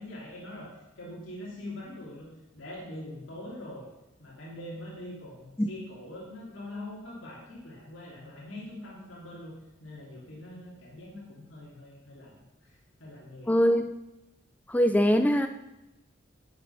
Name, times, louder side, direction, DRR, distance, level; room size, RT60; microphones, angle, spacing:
voice 1, 0.0-3.9 4.2-9.5 9.8-13.5, left 1 dB, 85° left, -5 dB, 2.7 m, -43 dB
voice 2, 13.5-13.8 14.7-15.5, equal, 10° left, 8 dB, 0.4 m, -22 dB
10.5 x 7.7 x 5.5 m, 0.95 s
head